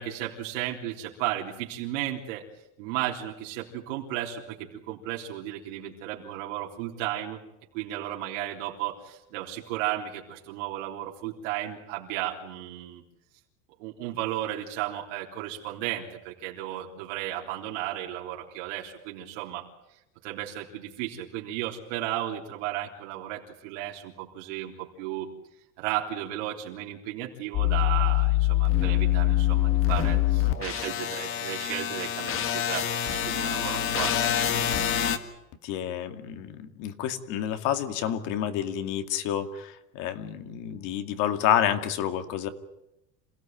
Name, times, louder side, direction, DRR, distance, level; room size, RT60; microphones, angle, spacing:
voice 1, 0.0-2.4 2.8-7.4 7.7-13.0 13.8-19.7 20.2-25.3 25.8-34.3, right 13 dB, 80° right, -2 dB, 3.7 m, -34 dB
sound 1, 27.5-35.2, left 12 dB, 35° left, 1.9 m, -25 dB
voice 2, 35.6-42.5, left 10 dB, 55° left, 9 dB, 2.3 m, -29 dB
27.0 x 17.0 x 9.2 m, 0.88 s
cardioid pair, 170°, 37 cm